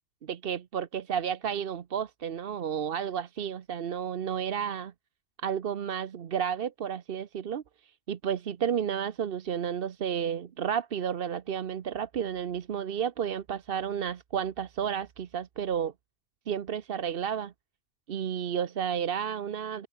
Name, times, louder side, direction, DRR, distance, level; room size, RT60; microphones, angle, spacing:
voice 1, 0.2-4.9 5.4-15.9 16.5-17.5 18.1-19.9, right 8 dB, 65° right, 1.0 m, -32 dB
open air
omnidirectional pair, 1.1 m